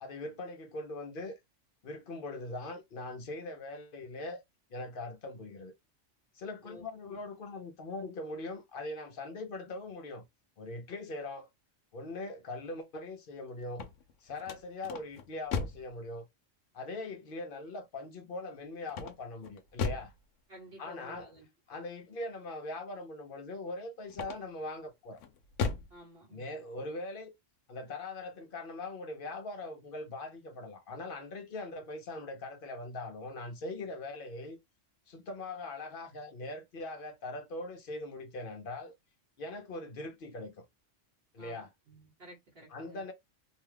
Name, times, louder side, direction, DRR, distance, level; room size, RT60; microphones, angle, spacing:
voice 1, 0.0-1.4 1.8-4.4 4.7-5.7 6.4-10.2 10.6-11.5 11.9-13.8 14.2-16.2 16.7-20.1 20.8-21.3 21.7-25.2 26.3-27.3 27.7-34.6 35.1-38.9 39.4-40.6 41.3-41.7 42.7-43.1, left 2 dB, 50° left, 0.8 m, -41 dB
voice 2, 6.6-7.2 20.5-21.4 25.9-26.5 41.4-43.0, equal, 50° right, 1.2 m, -53 dB
sound 1, 13.6-15.9 18.9-20.2 24.1-24.7 25.2-26.0, left 5 dB, 80° left, 1.0 m, -36 dB
2.7 x 2.2 x 3.2 m
omnidirectional pair, 1.3 m